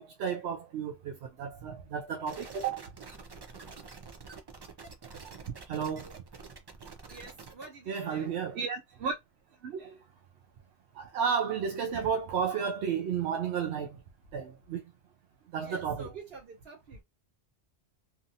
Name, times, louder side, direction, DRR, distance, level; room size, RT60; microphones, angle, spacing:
voice 1, 0.0-2.9 5.7-6.1 7.9-9.1 9.6-10.0 10.9-14.0 14.3-14.8 15.5-16.1, right 7 dB, 80° right, 0.8 m, -32 dB
sound 1, 2.3-7.7, right 4 dB, 40° right, 0.3 m, -47 dB
voice 2, 7.1-8.3 15.6-17.0, right 4 dB, 60° right, 1.4 m, -48 dB
2.8 x 2.6 x 2.6 m
omnidirectional pair, 1.1 m